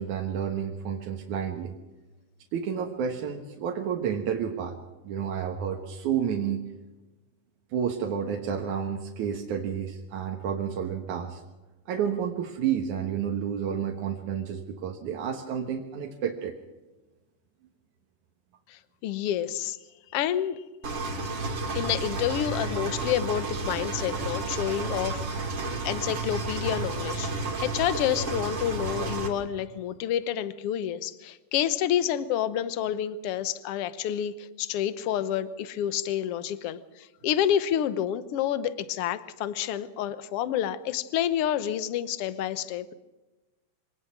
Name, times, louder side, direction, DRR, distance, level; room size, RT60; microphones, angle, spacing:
voice 1, 0.0-1.8 2.5-4.8 5.0-6.6 7.7-11.4 11.9-16.6, right 8 dB, 70° right, 1 dB, 2.7 m, -30 dB
voice 2, 18.7-19.8 20.1-20.6 21.7-25.5 25.8-27.3 27.6-42.9, left 10 dB, 65° left, 14 dB, 1.5 m, -29 dB
Engine, 20.8-29.3, right 3 dB, 45° right, 3.6 m, -31 dB
24.5 x 18.5 x 6.1 m, 1.1 s
omnidirectional pair, 3.7 m